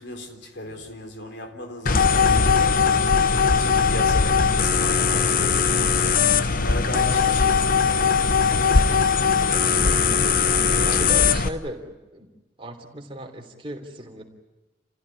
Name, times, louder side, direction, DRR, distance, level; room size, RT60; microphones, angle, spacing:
voice 1, 0.0-3.1 3.4-6.0 6.5-8.1 8.6-9.1 9.7-11.1, left 1 dB, 65° left, 3.8 m, -36 dB
sound 1, 1.9-11.5, left 5 dB, 45° left, 0.9 m, -20 dB
voice 2, 10.8-12.3 12.6-14.2, equal, 30° right, 3.2 m, -36 dB
29.0 x 16.0 x 9.8 m
head